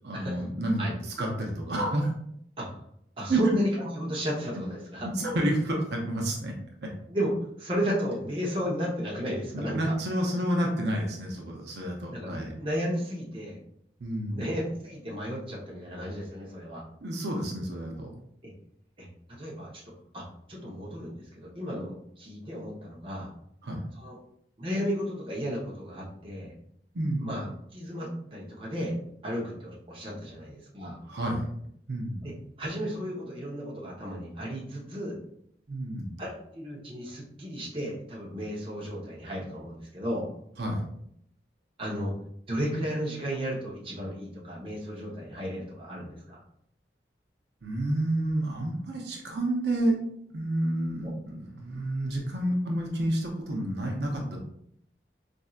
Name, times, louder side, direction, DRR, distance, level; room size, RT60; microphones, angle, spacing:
voice 1, 0.0-2.1 3.3-3.4 5.1-6.5 6.8-6.9 9.5-12.5 14.0-14.4 17.0-18.1 23.6-23.8 26.9-27.5 31.1-31.4 31.9-32.3 35.7-36.2 40.6-40.8 47.6-50.0 50.3-54.4, right 1 dB, 75° right, 0 dB, 0.6 m, -29 dB
voice 2, 3.2-5.1 7.1-9.9 12.1-13.6 14.3-16.8 18.4-18.5 19.0-23.3 24.0-24.2 24.6-26.5 27.2-27.5 27.7-28.9 29.2-31.0 32.2-32.3 32.6-35.2 36.2-40.3 41.8-42.1 42.5-46.4 51.0-51.1, equal, 30° right, -4 dB, 0.8 m, -33 dB
4.2 x 2.6 x 2.4 m, 0.71 s
head